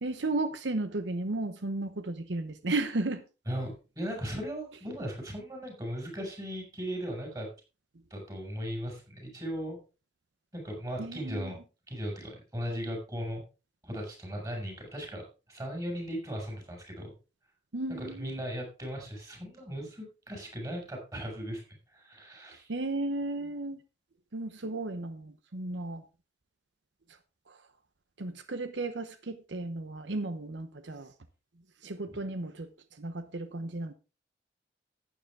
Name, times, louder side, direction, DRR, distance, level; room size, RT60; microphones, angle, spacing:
voice 1, 0.0-3.2 11.0-11.5 17.7-18.4 22.7-23.8 24.3-26.0 28.2-31.1 31.8-32.7 33.0-33.9, right 2 dB, 85° right, 0.9 m, -34 dB
voice 2, 3.5-7.5 8.1-9.8 10.5-11.6 11.9-13.4 13.8-15.2 15.5-17.1 17.9-22.7 32.1-32.2, equal, 20° right, 5.5 m, -37 dB
12.0 x 9.3 x 3.6 m
head